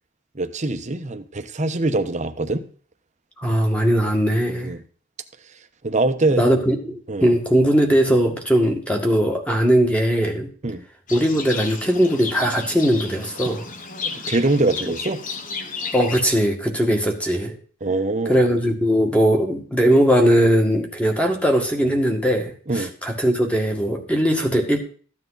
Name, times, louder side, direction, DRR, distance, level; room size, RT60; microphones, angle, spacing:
voice 1, 0.3-2.6 4.6-4.8 5.8-6.4 7.1-7.4 10.6-10.8 14.0-15.2 17.8-18.4 22.7-22.9, right 2 dB, 35° right, 1.0 m, -23 dB
voice 2, 3.4-4.7 6.3-10.5 11.1-13.7 15.9-17.6 18.3-24.8, equal, 5° left, 1.9 m, -19 dB
Livestock farm animals working animals, 11.1-16.2, left 4 dB, 40° left, 1.2 m, -32 dB
14.0 x 9.2 x 4.0 m
head